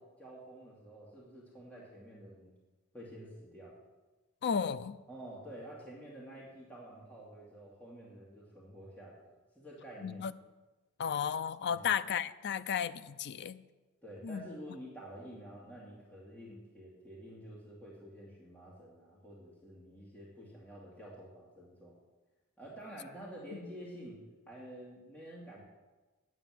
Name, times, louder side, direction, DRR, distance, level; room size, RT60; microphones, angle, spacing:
voice 1, 0.0-2.5 2.9-3.7 5.1-9.2 9.6-10.2 11.7-11.9 14.0-22.0 22.6-24.2 24.5-25.6, right 1 dB, 5° left, -6 dB, 2.3 m, -49 dB
voice 2, 4.4-5.0 10.0-10.3 11.0-13.6 14.2-14.4 23.5-23.6, left 7 dB, 55° left, 14 dB, 0.4 m, -34 dB
9.5 x 7.9 x 7.5 m, 1.2 s
head